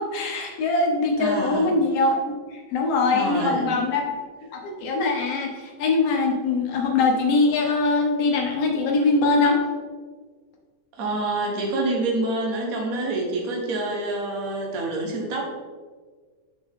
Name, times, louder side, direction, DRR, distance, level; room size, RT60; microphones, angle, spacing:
voice 1, 0.0-2.2 2.5-4.0 4.5-9.6, left 3 dB, 70° left, 1 dB, 1.6 m, -22 dB
voice 2, 1.2-1.7 3.1-3.8 11.0-15.5, right 2 dB, 55° right, 0 dB, 0.9 m, -27 dB
6.8 x 6.2 x 3.6 m, 1.5 s
omnidirectional pair, 3.5 m